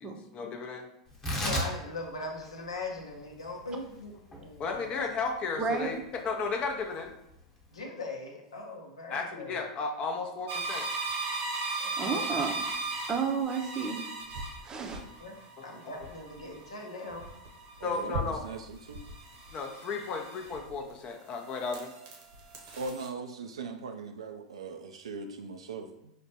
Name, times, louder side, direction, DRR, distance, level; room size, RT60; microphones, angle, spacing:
voice 1, 0.0-0.9 4.6-7.1 9.1-10.9 17.8-18.4 19.5-21.9, left 4 dB, 35° left, 4 dB, 0.5 m, -34 dB
Tearing, 1.1-7.8, equal, 20° left, 1.0 m, -39 dB
voice 2, 1.4-5.0 7.7-9.7 11.8-12.4 15.2-17.3, left 2 dB, 85° left, 1 dB, 0.7 m, -40 dB
voice 3, 5.6-5.9 12.0-12.6 13.1-14.0 14.3-15.0, right 5 dB, 25° right, 3 dB, 0.5 m, -32 dB
Electrical Noise, 10.5-20.9 21.3-23.1, right 3 dB, 55° right, 0.8 m, -38 dB
voice 4, 17.8-19.0 22.8-26.1, right 4 dB, 80° right, 5 dB, 0.3 m, -40 dB
4.9 x 2.2 x 2.7 m, 0.85 s
hypercardioid pair, 95°, 3 cm